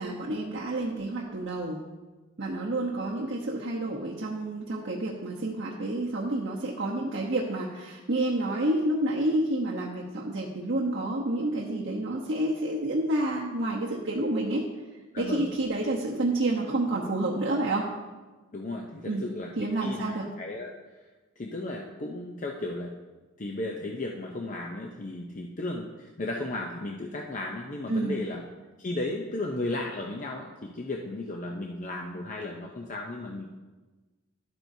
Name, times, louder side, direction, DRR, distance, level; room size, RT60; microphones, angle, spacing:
voice 1, 0.0-1.8 2.4-14.6 15.2-17.9 19.1-19.2 19.6-20.3 27.9-28.2, right 1 dB, 60° right, -4 dB, 0.9 m, -29 dB
voice 2, 15.1-15.5 18.5-20.7 21.4-22.9 23.4-28.4 28.8-33.5, left 2 dB, 40° left, 1 dB, 0.6 m, -35 dB
11.5 x 8.9 x 2.7 m, 1.2 s
head